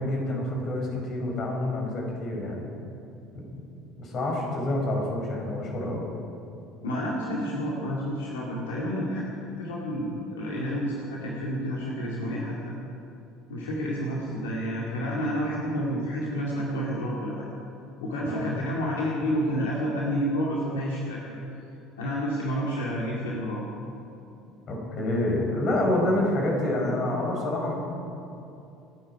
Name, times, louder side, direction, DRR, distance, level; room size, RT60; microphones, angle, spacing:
voice 1, 0.0-2.7 3.3-3.6 4.0-6.0 18.2-18.5 24.7-27.7, left 1 dB, 40° left, 0 dB, 4.8 m, -27 dB
voice 2, 6.8-9.2 9.6-12.6 13.5-17.4 18.0-21.4 22.0-23.6, equal, 70° left, -4 dB, 2.2 m, -29 dB
28.0 x 9.6 x 4.9 m, 2.7 s
figure-of-eight pair, 60°, 0 cm